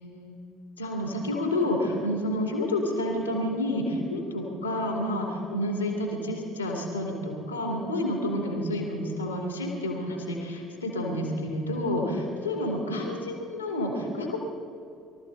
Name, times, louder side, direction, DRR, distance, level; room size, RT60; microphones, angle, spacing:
voice 1, 0.0-0.4 0.8-14.4, left 1 dB, 90° left, 0 dB, 2.8 m, -29 dB
23.5 x 13.5 x 4.1 m, 2.5 s
figure-of-eight pair, 55°, 0 cm